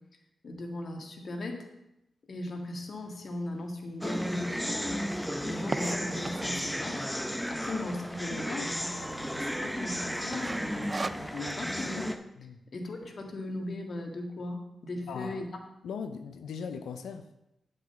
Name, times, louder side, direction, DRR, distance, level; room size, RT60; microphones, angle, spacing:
voice 1, 0.4-1.7 2.3-7.1 7.5-12.2 12.7-15.5, left 2 dB, 60° left, 3 dB, 1.8 m, -38 dB
sound 1, 3.2-3.3 3.9-4.0 4.2-4.3 4.5-6.7 7.3-7.7 8.1-8.2 8.4-8.5 9.0-9.4 9.7-9.9 10.3-11.6, right 3 dB, 35° right, 0.3 m, -36 dB
sound 2, 4.0-12.2, equal, ahead, 0.9 m, -34 dB
voice 2, 14.9-15.4 15.8-17.5, left 6 dB, 85° left, 8 dB, 0.6 m, -39 dB
8.1 x 5.5 x 7.1 m, 0.86 s
supercardioid pair, 45°, 0 cm